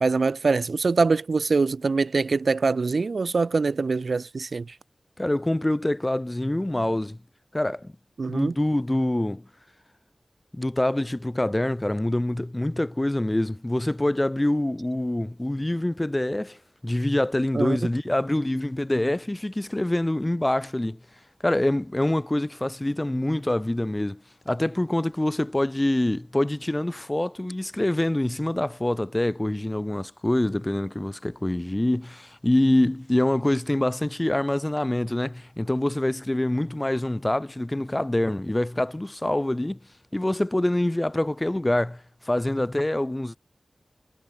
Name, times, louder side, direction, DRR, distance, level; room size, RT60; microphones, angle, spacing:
voice 1, 0.0-4.7 8.2-8.5 17.5-17.8, right 4 dB, 75° right, 1.1 m, -23 dB
voice 2, 5.2-7.2 7.5-7.9 8.3-9.4 10.5-21.0 21.4-39.8 40.1-43.3, left 1 dB, 20° left, 3.1 m, -25 dB
wide cardioid pair, 65°, 0 cm